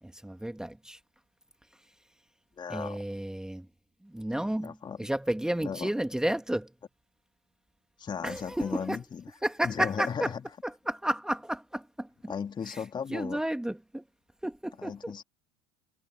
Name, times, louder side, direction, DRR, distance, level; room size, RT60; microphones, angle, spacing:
voice 1, 0.0-1.0 1.7-1.9 2.7-3.7 4.0-6.7 8.2-9.0 9.4-10.3 10.6-12.3 12.7-12.8 13.1-14.0 14.4-15.2, right 1 dB, 5° right, 2.0 m, -32 dB
voice 2, 2.6-3.0 4.6-5.0 5.6-5.9 8.0-9.2 9.6-10.4 12.3-13.4 14.8-15.2, left 7 dB, 25° left, 2.7 m, -36 dB
figure-of-eight pair, 75°, 16 cm